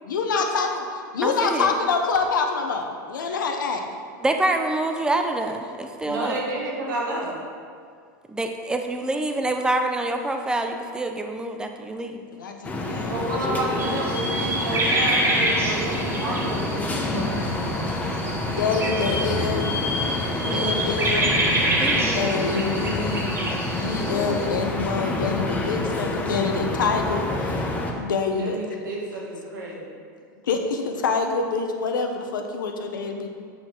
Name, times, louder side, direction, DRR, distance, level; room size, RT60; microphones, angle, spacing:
voice 1, 0.0-3.8 12.3-13.3 18.5-19.8 20.3-23.3 23.7-27.6 28.0-28.6 30.5-33.3, left 4 dB, 90° left, 4 dB, 0.9 m, -26 dB
voice 2, 1.2-1.7 4.2-6.4 8.3-12.2 20.4-20.9 21.8-22.6, right 2 dB, 5° right, 4 dB, 0.6 m, -26 dB
voice 3, 6.0-7.4 13.1-17.5 28.4-29.9, right 2 dB, 85° right, -3 dB, 1.9 m, -30 dB
sound 1, 12.6-27.9, left 2 dB, 15° left, 0.9 m, -28 dB
sound 2, 13.8-24.5, right 1 dB, 25° right, 1.7 m, -27 dB
7.8 x 5.6 x 4.6 m, 2.2 s
hypercardioid pair, 110°, 10 cm